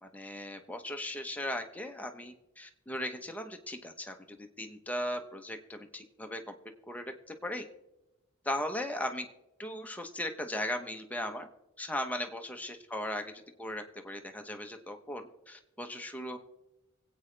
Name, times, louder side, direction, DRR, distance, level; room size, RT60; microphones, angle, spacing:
voice 1, 0.0-6.5 6.9-7.6 8.4-9.3 9.6-11.5 11.8-13.3 13.6-16.4, left 1 dB, 5° left, 4 dB, 1.0 m, -38 dB
24.0 x 8.6 x 3.3 m, 0.93 s
head